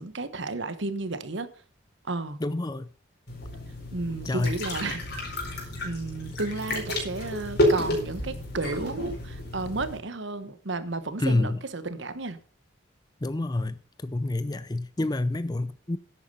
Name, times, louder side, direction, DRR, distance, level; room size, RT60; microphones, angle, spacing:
voice 1, 0.0-1.5 2.1-2.4 3.9-12.4, right 3 dB, 65° right, 1.2 m, -33 dB
voice 2, 2.4-2.9 4.3-4.5 5.8-5.9 11.2-11.6 13.2-16.0, left 2 dB, 20° left, 0.5 m, -28 dB
sound 1, 3.3-10.0, left 1 dB, 55° left, 4.4 m, -30 dB
11.0 x 8.8 x 5.5 m
head